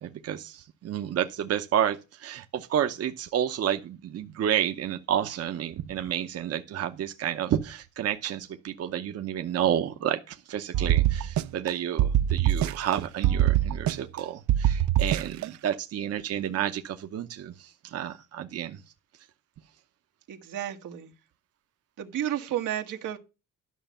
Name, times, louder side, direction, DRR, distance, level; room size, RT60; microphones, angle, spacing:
voice 1, 0.0-18.8, right 10 dB, 55° right, 0.8 m, -30 dB
sound 1, 10.7-11.7 12.0-13.0 13.2-14.2 14.5-15.5, right 12 dB, 75° right, 0.5 m, -23 dB
voice 2, 15.1-15.5 20.3-21.1 22.0-23.2, right 11 dB, 90° right, 1.5 m, -33 dB
11.5 x 6.2 x 5.6 m
cardioid pair, 150°, 30 cm